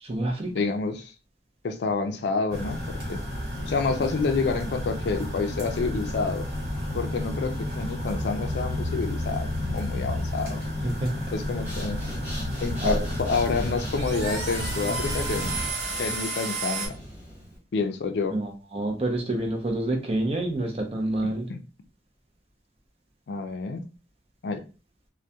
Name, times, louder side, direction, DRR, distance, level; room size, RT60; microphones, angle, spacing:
voice 1, 0.0-0.5 10.8-11.1 12.8-13.1 18.3-21.5, right 1 dB, 35° right, 0.5 m, -28 dB
voice 2, 0.5-1.1 1.6-3.2 3.7-6.5 6.9-10.6 11.3-12.0 12.6-15.6 16.0-17.0 17.7-18.4 21.2-21.6 23.3-23.8 24.4-24.6, left 4 dB, 75° left, 0.4 m, -28 dB
sound 1, 2.5-15.7, left 1 dB, 60° right, 1.1 m, -31 dB
Breathing, 11.5-17.6, equal, 10° right, 0.8 m, -41 dB
sound 2, 13.9-16.9, right 3 dB, 80° right, 0.9 m, -33 dB
2.2 x 2.2 x 2.6 m
head